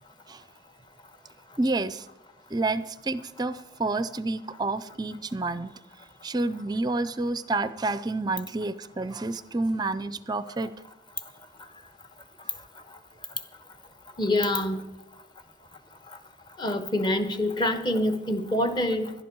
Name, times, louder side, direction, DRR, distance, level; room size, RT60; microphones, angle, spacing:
voice 1, 1.6-2.1 2.5-5.7 6.2-10.7, right 2 dB, 20° right, 15 dB, 0.5 m, -29 dB
voice 2, 14.2-14.8 16.6-19.1, left 1 dB, 25° left, 9 dB, 1.2 m, -26 dB
18.0 x 12.0 x 4.6 m, 0.97 s
head